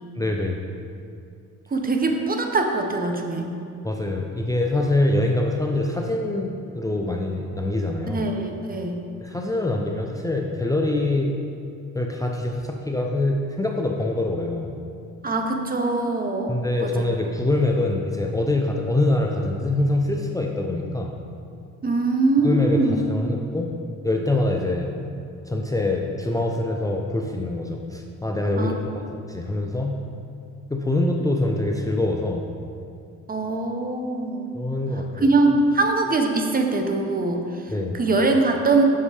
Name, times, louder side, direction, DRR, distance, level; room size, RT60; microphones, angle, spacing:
voice 1, 0.2-0.6 3.8-8.2 9.2-11.4 11.9-14.7 16.5-21.2 22.4-23.7 24.0-24.9 25.4-30.0 30.7-32.5 34.5-35.3 37.7-37.9, left 2 dB, 10° left, 1 dB, 0.5 m, -24 dB
voice 2, 1.7-3.5 8.1-9.0 15.2-16.5 16.8-17.2 21.8-23.0 28.6-28.8 33.3-34.5 35.2-38.8, right 3 dB, 30° right, 4 dB, 0.8 m, -22 dB
6.4 x 5.6 x 4.8 m, 2.4 s
cardioid pair, 90°, 30 cm